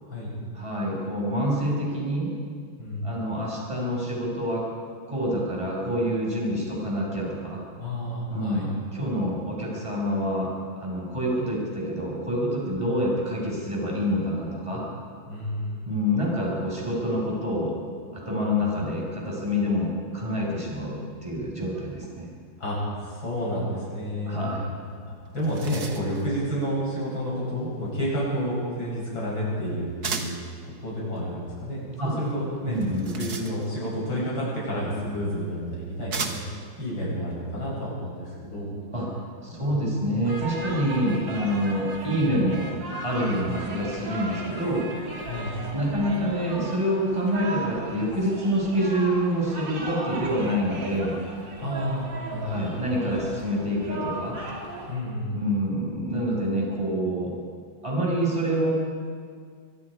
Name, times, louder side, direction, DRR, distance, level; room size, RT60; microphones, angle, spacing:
voice 1, 0.5-2.3 3.0-4.6 5.1-7.6 8.3-10.5 10.8-14.8 15.9-17.8 18.1-22.3 24.3-24.7 32.0-32.1 32.7-33.1 38.9-39.1 39.4-42.7 43.0-44.9 45.7-51.1 52.4-54.4 55.3-57.3 57.8-58.7, equal, 15° right, -3 dB, 5.9 m, -27 dB
voice 2, 2.8-3.1 7.8-8.7 15.3-15.9 18.3-18.8 22.6-24.8 25.3-30.4 30.6-32.8 33.2-36.4 36.8-38.8 39.5-39.7 43.2-43.5 45.2-45.6 51.6-52.7 54.9-55.4, equal, 85° left, -6 dB, 7.9 m, -30 dB
sound 1, 24.9-25.0 25.3-26.3 30.0-30.5 32.7-33.9 35.0-35.1 36.1-36.7, right 5 dB, 55° right, 1.9 m, -34 dB
sound 2, 40.2-54.9, right 2 dB, 70° right, 3.5 m, -37 dB
23.5 x 23.5 x 5.0 m, 2.1 s
omnidirectional pair, 2.1 m